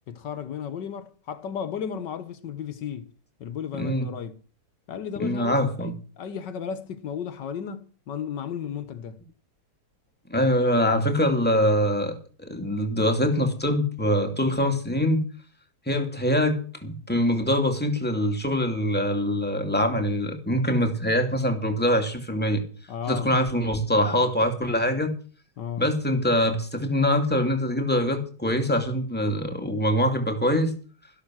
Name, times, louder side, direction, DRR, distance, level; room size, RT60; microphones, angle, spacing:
voice 1, 0.1-3.1 3.4-4.4 4.9-9.2 22.9-23.3 25.6-25.9, left 8 dB, 85° left, 1.9 m, -34 dB
voice 2, 3.7-4.1 5.2-5.9 10.3-15.2 15.9-22.6 23.1-25.1 25.8-30.7, equal, 5° left, 2.6 m, -24 dB
14.0 x 12.0 x 6.4 m
omnidirectional pair, 1.9 m